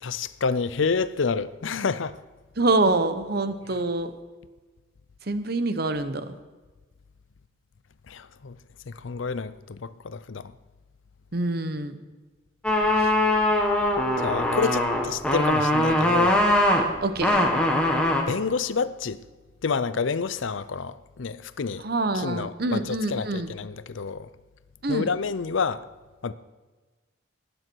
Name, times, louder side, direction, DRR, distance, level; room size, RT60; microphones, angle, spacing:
voice 1, 0.0-2.2 3.7-3.8 8.1-8.6 8.9-10.5 14.2-16.4 18.3-19.2 19.6-21.8 22.1-24.3 24.9-25.9 26.2-26.3, left 5 dB, 75° left, 0.6 m, -29 dB
voice 2, 2.6-4.1 5.3-6.2 11.3-12.0 13.0-13.1 17.0-17.5 21.8-23.5 24.8-25.1, right 2 dB, 50° right, 0.9 m, -26 dB
sound 1, 12.6-18.2, left 1 dB, 5° left, 1.6 m, -21 dB
18.5 x 10.0 x 4.6 m
head